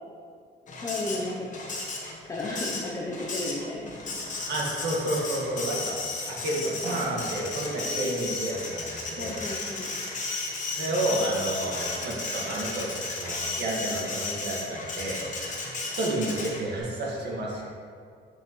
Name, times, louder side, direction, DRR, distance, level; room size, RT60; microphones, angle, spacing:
Printer, 0.7-16.8, left 3 dB, 40° left, 1.0 m, -34 dB
voice 1, 0.7-1.5 2.3-4.2 9.1-9.9 17.5-17.6, left 2 dB, 15° left, -2 dB, 0.5 m, -34 dB
voice 2, 4.5-5.9 6.3-9.4 10.7-12.9 13.1-15.2 16.0-17.6, right 1 dB, 55° right, -3 dB, 1.5 m, -30 dB
7.9 x 6.1 x 3.0 m, 2.2 s
cardioid pair, 180°, 20 cm